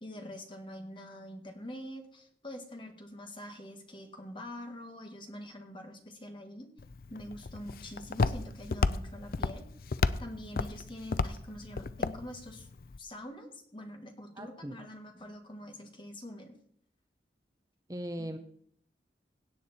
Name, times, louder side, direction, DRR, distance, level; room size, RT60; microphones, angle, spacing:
voice 1, 0.0-6.7 7.1-9.7 10.2-12.7 13.0-16.5, left 1 dB, 30° left, 4 dB, 1.7 m, -45 dB
Walk footsteps, 6.8-13.0, left 4 dB, 55° left, 0.5 m, -33 dB
voice 2, 14.4-14.8 17.9-18.4, right 1 dB, 20° right, 7 dB, 0.7 m, -38 dB
17.0 x 8.1 x 4.3 m, 0.64 s
head